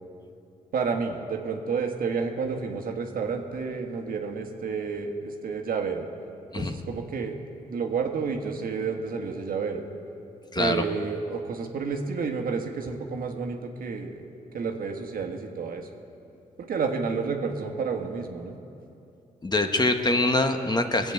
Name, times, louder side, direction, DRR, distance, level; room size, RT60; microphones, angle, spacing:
voice 1, 0.7-6.1 6.5-7.4 7.7-9.9 10.6-14.2 14.5-15.9 16.6-18.6, right 5 dB, 65° right, 3 dB, 1.5 m, -30 dB
voice 2, 10.5-10.8 19.4-21.1, left 2 dB, 25° left, 5 dB, 1.3 m, -24 dB
20.0 x 7.2 x 8.2 m, 2.9 s
supercardioid pair, 60°, 16 cm